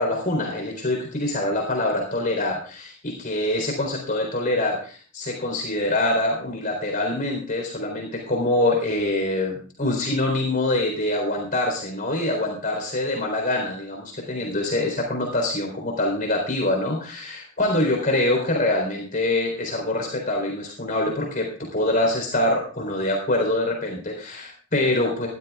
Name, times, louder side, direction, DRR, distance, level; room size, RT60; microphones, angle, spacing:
voice 1, 0.0-21.5 21.7-25.3, left 1 dB, 40° left, 1 dB, 4.0 m, -24 dB
22.0 x 13.5 x 2.4 m, 0.39 s
head